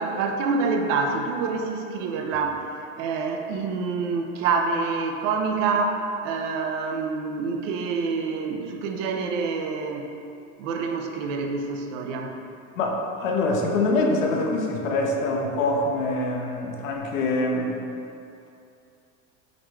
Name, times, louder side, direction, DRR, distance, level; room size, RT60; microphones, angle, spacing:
voice 1, 0.0-2.6 3.0-10.1 10.6-12.3, right 4 dB, 70° right, 3 dB, 0.6 m, -27 dB
voice 2, 12.8-17.8, left 2 dB, 75° left, 0 dB, 0.7 m, -24 dB
4.0 x 3.2 x 3.1 m, 2.6 s
hypercardioid pair, 95°, 40 cm